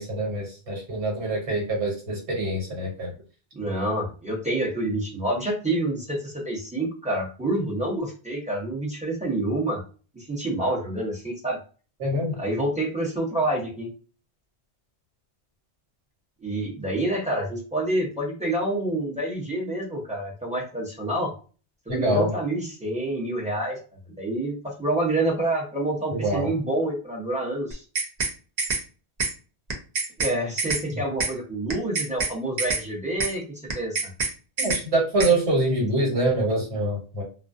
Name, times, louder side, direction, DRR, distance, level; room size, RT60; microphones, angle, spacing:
voice 1, 0.0-3.1 12.0-12.4 21.9-22.3 26.1-26.5 30.9-31.0 34.6-37.2, right 1 dB, 80° right, -1 dB, 1.4 m, -25 dB
voice 2, 3.5-9.8 10.1-11.6 12.4-13.9 16.4-21.3 21.9-23.8 24.1-27.8 30.2-33.4 33.7-34.0, right 1 dB, 10° right, -4 dB, 0.7 m, -27 dB
sound 1, 27.7-28.3 28.6-28.8 29.2-29.3 29.7-30.3 30.6-30.8 31.2-31.3 31.7-32.3 32.6-32.8 33.2-33.3 33.7-34.3 34.6-34.8 35.2-35.3, right 4 dB, 50° right, 0.6 m, -26 dB
2.3 x 2.2 x 2.5 m, 0.37 s
omnidirectional pair, 1.1 m